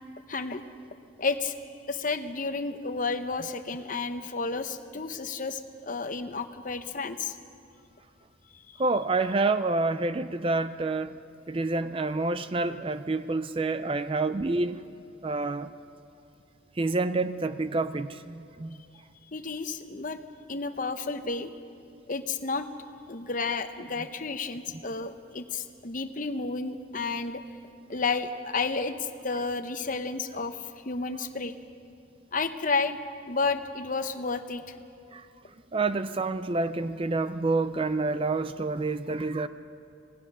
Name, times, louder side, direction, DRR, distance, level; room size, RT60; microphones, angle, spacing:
voice 1, 0.3-0.6 1.2-1.5 1.9-7.4 8.5-8.8 19.3-20.2 20.5-21.5 22.1-22.7 23.1-27.4 27.9-31.5 32.3-33.0 33.3-34.7, left 4 dB, 40° left, 9 dB, 0.9 m, -31 dB
voice 2, 8.8-11.1 11.5-14.8 15.2-15.7 16.8-18.8 24.7-24.8 35.1-35.3 35.7-39.5, right 3 dB, 25° right, 12 dB, 0.4 m, -28 dB
26.5 x 18.0 x 6.1 m, 2.5 s
head